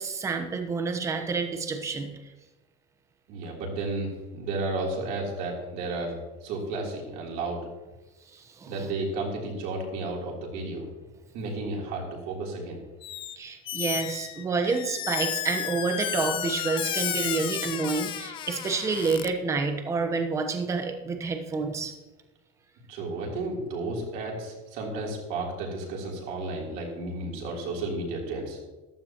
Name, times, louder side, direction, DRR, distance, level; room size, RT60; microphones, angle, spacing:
voice 1, 0.0-2.1 8.3-8.9 13.4-21.9, right 4 dB, 15° right, 6 dB, 1.0 m, -29 dB
voice 2, 3.3-7.6 8.7-10.9 11.3-12.8 22.9-28.6, right 2 dB, 50° right, -1 dB, 3.4 m, -32 dB
Squeak, 13.0-13.4 13.6-19.3, left 11 dB, 25° left, 0.5 m, -32 dB
14.5 x 13.0 x 3.0 m, 1.1 s
cardioid pair, 175°, 18 cm